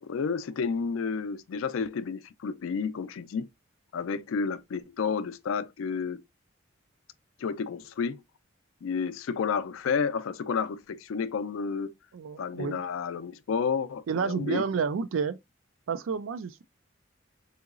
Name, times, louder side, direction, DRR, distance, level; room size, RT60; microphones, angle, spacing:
voice 1, 0.0-3.5 3.9-6.2 7.4-8.2 8.8-11.9 12.4-14.6, left 5 dB, 80° left, 0.4 m, -31 dB
voice 2, 12.1-12.8 14.1-15.4 15.9-16.6, right 5 dB, 75° right, 0.4 m, -30 dB
3.8 x 2.8 x 2.4 m
head